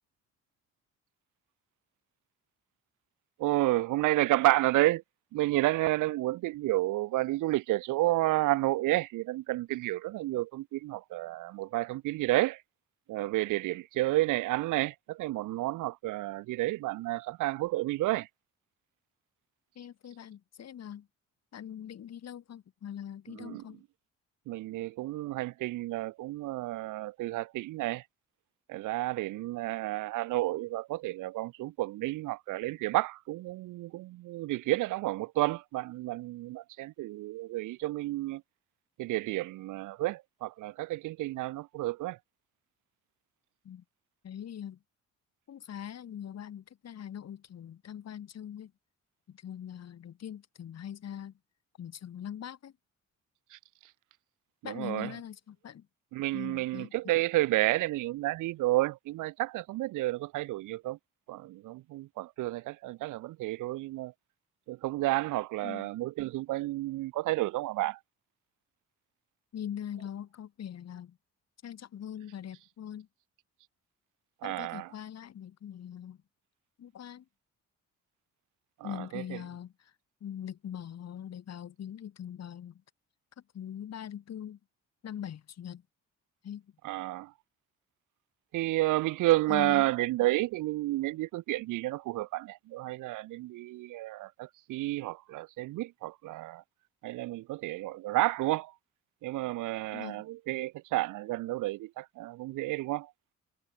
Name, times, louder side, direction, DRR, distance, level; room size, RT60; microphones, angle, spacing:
voice 1, 3.4-5.0 5.3-12.6 13.1-18.3 23.4-23.6 24.5-28.0 28.7-38.4 39.0-42.2 53.5-53.6 54.6-55.1 56.1-61.0 61.3-64.1 64.7-68.0 74.4-74.9 78.8-79.2 86.8-87.3 88.5-96.6 97.0-98.7 99.2-103.1, right 18 dB, 85° right, 0.7 m, -31 dB
voice 2, 19.8-21.1 21.5-23.8 43.6-43.8 44.2-44.8 45.5-48.7 49.3-51.4 51.8-52.7 54.6-55.9 56.3-56.9 65.6-65.9 69.5-71.2 71.6-73.1 74.4-76.2 76.8-77.3 78.8-79.9 80.2-82.8 83.4-84.6 85.0-85.8 86.4-86.7 89.5-89.9 99.9-100.2, left 9 dB, 60° left, 2.4 m, -42 dB
cardioid pair, 90°, 30 cm